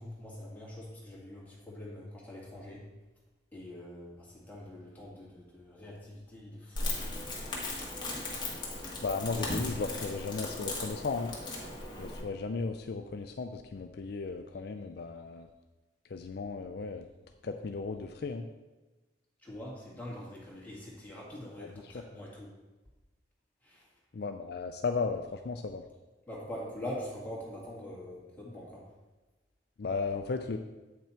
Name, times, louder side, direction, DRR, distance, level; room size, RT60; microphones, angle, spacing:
voice 1, 0.0-2.9 3.5-7.0 19.4-22.5 23.6-23.9 26.3-28.9, left 1 dB, 10° left, -5 dB, 2.2 m, -44 dB
Crackle, 6.8-12.2, left 2 dB, 25° left, 1.6 m, -37 dB
voice 2, 9.0-11.3 12.0-15.5 16.1-17.1 17.4-18.4 24.1-25.8 29.8-30.6, left 4 dB, 60° left, 6 dB, 0.4 m, -35 dB
8.6 x 6.0 x 4.4 m, 1.1 s
head